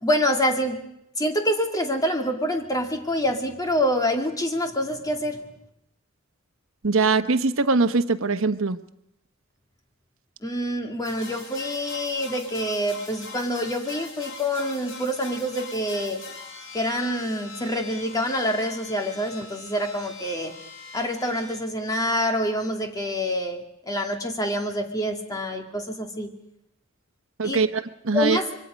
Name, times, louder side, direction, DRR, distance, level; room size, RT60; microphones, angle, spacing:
voice 1, 0.0-0.8 1.2-5.4 10.4-16.2 16.7-20.5 20.9-26.3 27.4-27.7 28.1-28.6, equal, 20° left, 3 dB, 2.4 m, -26 dB
voice 2, 6.8-8.8 27.4-27.7 28.0-28.4, right 4 dB, 70° right, 10 dB, 1.0 m, -21 dB
sound 1, 11.0-21.6, left 3 dB, 70° left, 6.0 m, -42 dB
26.0 x 23.5 x 5.2 m, 0.79 s
head